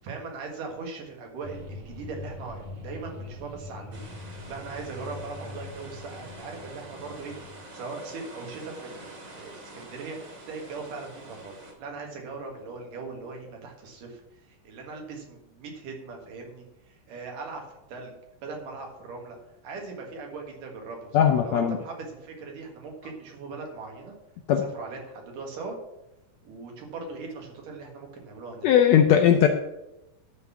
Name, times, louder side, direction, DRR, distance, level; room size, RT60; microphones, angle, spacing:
voice 1, 0.0-4.0 4.5-7.3 7.7-11.5 11.8-18.1 18.4-19.4 19.6-24.1 24.6-25.7 26.4-28.7, right 4 dB, 80° right, 1 dB, 3.4 m, -39 dB
sound 1, 1.4-7.6, left 2 dB, 55° right, 2.7 m, -42 dB
sound 2, 3.9-11.7, right 2 dB, 35° right, 2.6 m, -46 dB
voice 2, 21.1-21.8 24.5-24.6 28.6-29.5, left 9 dB, 80° left, 5 dB, 1.6 m, -18 dB
12.0 x 4.2 x 7.0 m, 0.92 s
omnidirectional pair, 3.7 m